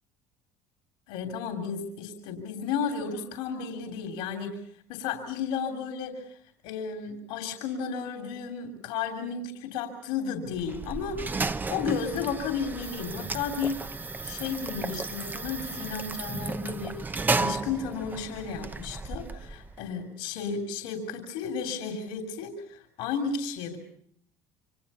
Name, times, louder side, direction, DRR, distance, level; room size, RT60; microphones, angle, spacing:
voice 1, 1.1-4.6 4.9-6.4 6.6-11.3 11.7-13.8 14.2-23.8, left 6 dB, 80° left, 4 dB, 3.0 m, -33 dB
sound 1, 10.5-19.8, right 3 dB, 20° right, 0.9 m, -33 dB
28.0 x 25.0 x 5.6 m, 0.65 s
supercardioid pair, 90°, 9 cm